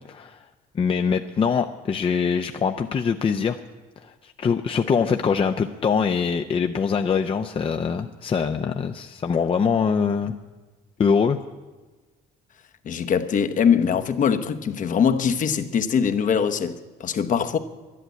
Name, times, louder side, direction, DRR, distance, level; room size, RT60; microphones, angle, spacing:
voice 1, 0.1-0.4 0.7-3.6 4.2-10.3 11.0-11.4, left 6 dB, 30° left, 6 dB, 0.6 m, -23 dB
voice 2, 12.8-17.6, left 7 dB, 50° left, 9 dB, 1.0 m, -22 dB
11.5 x 11.0 x 9.2 m, 1.3 s
cardioid pair, 110°, 17 cm